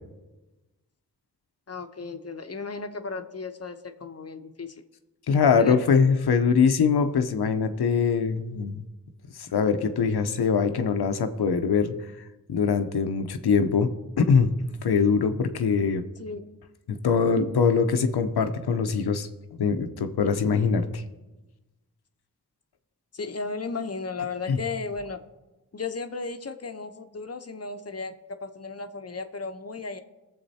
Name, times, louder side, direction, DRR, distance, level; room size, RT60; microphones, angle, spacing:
voice 1, 1.7-4.8 5.6-5.8 16.2-16.4 23.1-25.2 25.7-30.0, left 4 dB, 40° left, 8 dB, 0.8 m, -35 dB
voice 2, 5.3-8.8 9.4-11.9 12.5-13.9 14.2-14.5 14.8-16.0 16.9-19.3 19.6-21.0 24.5-24.6, left 5 dB, 85° left, 9 dB, 0.8 m, -22 dB
20.5 x 7.2 x 2.8 m, 1.1 s
cardioid pair, 45°, 38 cm